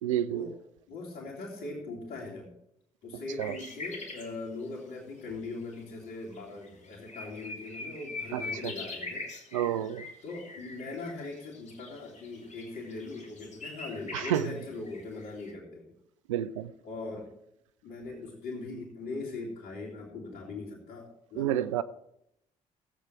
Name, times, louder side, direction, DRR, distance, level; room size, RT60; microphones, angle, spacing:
voice 1, 0.0-0.5 3.4-3.5 8.3-8.4 9.5-10.1 14.1-14.4 16.3-16.7 21.4-21.8, right 11 dB, 90° right, 0.4 m, -29 dB
voice 2, 0.9-2.5 3.0-9.3 10.2-16.0 16.8-17.3 17.8-21.5, left 3 dB, 70° left, 2.8 m, -40 dB
sound 1, 3.4-4.3 5.7-5.8 6.3-6.4 6.6-15.5, left 3 dB, 45° left, 2.7 m, -42 dB
15.0 x 8.0 x 4.6 m
hypercardioid pair, 45°, 16 cm